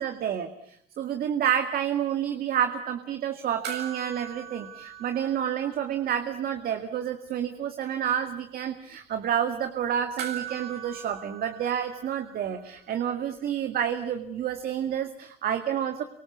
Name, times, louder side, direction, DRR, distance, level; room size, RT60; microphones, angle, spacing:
voice 1, 0.0-16.0, right 9 dB, 60° right, 7 dB, 2.1 m, -29 dB
sound 1, 3.6-6.3 6.6-6.7 10.2-12.8 14.9-15.0, right 8 dB, 80° right, 7.5 m, -40 dB
27.0 x 25.0 x 8.3 m, 0.68 s
cardioid pair, 110°, 17 cm